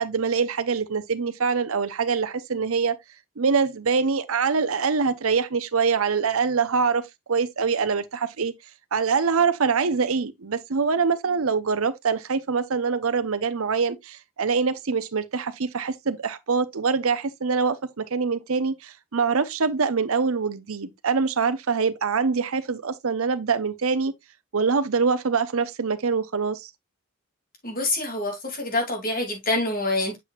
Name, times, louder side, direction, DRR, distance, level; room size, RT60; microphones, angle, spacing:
voice 1, 0.0-3.0 3.4-7.0 7.3-8.5 8.9-24.1 24.5-26.7, right 5 dB, 70° right, 0.7 m, -24 dB
voice 2, 27.6-30.2, left 2 dB, 40° left, 2.6 m, -26 dB
7.6 x 5.9 x 2.4 m
head